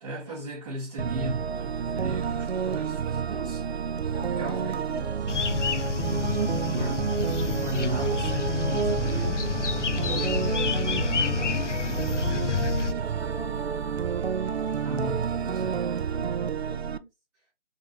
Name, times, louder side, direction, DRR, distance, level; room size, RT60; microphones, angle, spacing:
voice 1, 0.0-3.6 4.4-4.9 6.3-9.6 10.0-10.4 14.8-15.8, right 1 dB, 35° right, 1.2 m, -37 dB
sound 1, 1.0-17.0, right 7 dB, 65° right, 0.5 m, -29 dB
voice 2, 4.1-5.5 9.8-13.8 16.1-17.1, equal, ahead, 0.8 m, -44 dB
sound 2, 5.3-12.9, left 6 dB, 85° left, 0.6 m, -28 dB
3.9 x 2.5 x 2.9 m
figure-of-eight pair, 155°, 35 cm